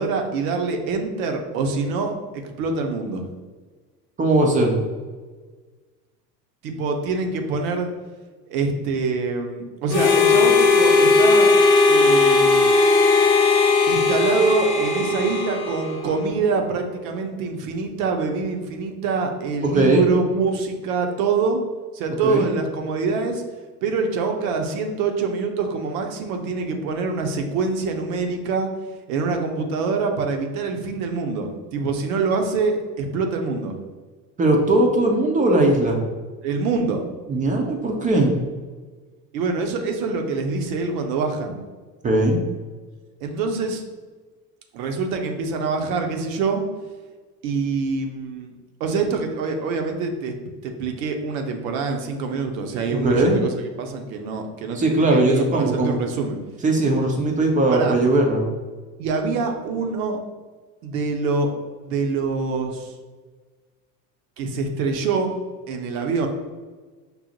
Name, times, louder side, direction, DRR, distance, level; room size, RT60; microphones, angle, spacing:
voice 1, 0.0-3.3 6.6-7.9 8.4-11.5 11.9-12.7 13.9-21.6 21.9-23.4 23.8-28.7 29.1-33.8 36.4-37.0 39.3-41.6 43.2-43.8 44.7-46.6 47.4-48.5 48.8-50.3 50.6-53.5 53.8-56.4 57.7-57.9 59.0-60.2 60.8-61.5 61.8-62.9 64.4-65.4 65.7-66.3, right 4 dB, 55° right, 4 dB, 0.7 m, -25 dB
voice 2, 4.2-4.8 19.6-20.1 22.2-22.5 34.4-36.0 37.3-38.3 42.0-42.4 52.9-53.4 54.7-56.0 56.6-58.5, right 2 dB, 15° right, 1 dB, 0.5 m, -19 dB
Harmonica, 9.9-16.3, left 3 dB, 85° left, 0.6 m, -17 dB
5.3 x 2.0 x 2.8 m, 1.4 s
figure-of-eight pair, 75°, 50 cm